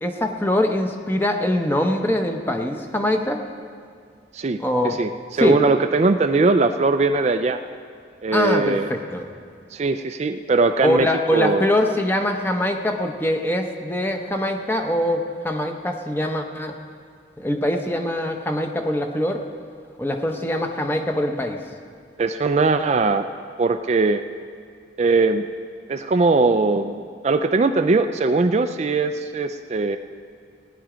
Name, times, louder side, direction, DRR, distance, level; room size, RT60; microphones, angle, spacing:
voice 1, 0.0-3.4 4.6-5.0 5.4-5.6 8.3-9.3 10.8-16.7 17.4-19.4 20.0-21.6, left 1 dB, 10° left, 4 dB, 0.9 m, -23 dB
voice 2, 4.8-7.6 8.2-8.9 9.7-11.1 11.3-11.7 22.2-23.2 23.6-24.2 25.0-25.4 25.9-30.0, right 3 dB, 40° right, 8 dB, 0.4 m, -20 dB
17.5 x 10.0 x 5.0 m, 2.1 s
head